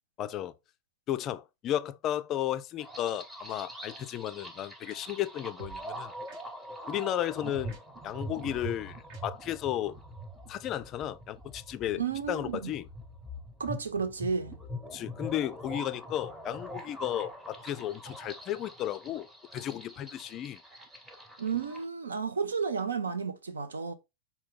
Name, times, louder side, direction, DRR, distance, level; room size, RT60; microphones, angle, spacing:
voice 1, 0.2-0.5 1.1-6.1 6.9-7.8 8.0-9.0 9.2-10.0 10.5-12.0 12.3-12.9 14.9-19.3 19.5-20.6, left 12 dB, 35° left, 0.3 m, -34 dB
sound 1, 2.8-21.8, equal, 15° right, 0.9 m, -44 dB
sound 2, 3.5-3.6 4.9-5.0 5.6-5.8 6.3-6.4 7.5-7.8 8.4-8.7 9.1-9.2, right 6 dB, 50° right, 0.9 m, -46 dB
voice 2, 11.9-12.7 13.6-14.5 21.4-23.9, right 6 dB, 70° right, 0.5 m, -32 dB
5.4 x 2.3 x 3.6 m
figure-of-eight pair, 90°, 0 cm